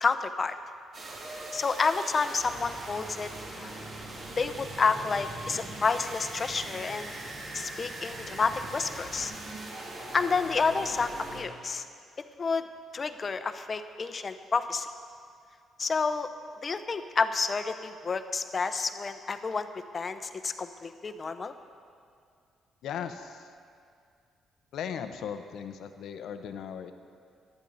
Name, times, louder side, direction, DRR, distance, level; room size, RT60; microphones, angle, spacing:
voice 1, 0.0-0.5 1.5-3.3 3.6-3.8 4.4-7.1 7.5-9.3 10.1-11.8 12.4-12.7 12.9-14.9 15.8-16.3 16.6-19.7 19.9-21.5, left 4 dB, 40° left, 9 dB, 0.8 m, -29 dB
sound 1, 0.9-11.4, right 2 dB, 55° right, 2.7 m, -41 dB
voice 2, 22.8-23.5 24.7-26.9, left 8 dB, 75° left, 8 dB, 0.8 m, -37 dB
17.5 x 12.0 x 4.1 m, 2.2 s
cardioid pair, 90°, 0 cm